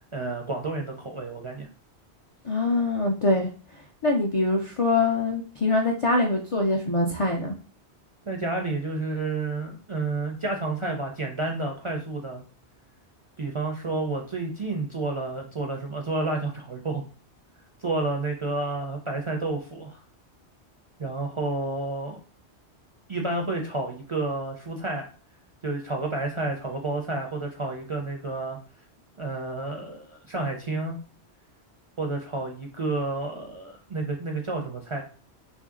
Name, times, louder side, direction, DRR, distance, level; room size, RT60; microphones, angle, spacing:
voice 1, 0.1-1.7 8.3-12.4 13.4-17.0 17.8-20.0 21.0-22.2 23.1-25.1 25.6-28.6 29.2-31.0 32.0-35.0, right 2 dB, 40° right, 1 dB, 0.4 m, -30 dB
voice 2, 2.4-3.5 4.0-7.5, left 2 dB, 55° left, 2 dB, 0.3 m, -24 dB
3.1 x 2.6 x 3.6 m, 0.39 s
omnidirectional pair, 1.1 m